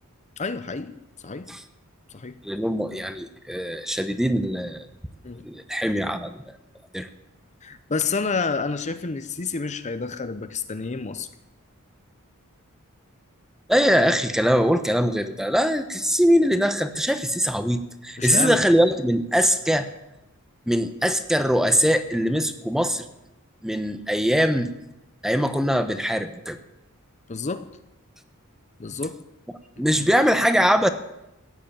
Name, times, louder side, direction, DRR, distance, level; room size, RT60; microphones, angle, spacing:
voice 1, 0.4-0.9 1.2-1.5 2.1-2.4 5.2-5.5 7.6-11.3 18.2-18.6 27.3-27.7 28.8-29.2, left 4 dB, 30° left, 11 dB, 0.7 m, -29 dB
voice 2, 2.4-4.9 5.4-6.4 6.9-7.1 13.7-19.9 20.7-23.1 23.6-24.7 25.2-26.6 29.8-30.9, equal, ahead, 9 dB, 0.9 m, -22 dB
15.5 x 9.5 x 8.9 m, 0.90 s
head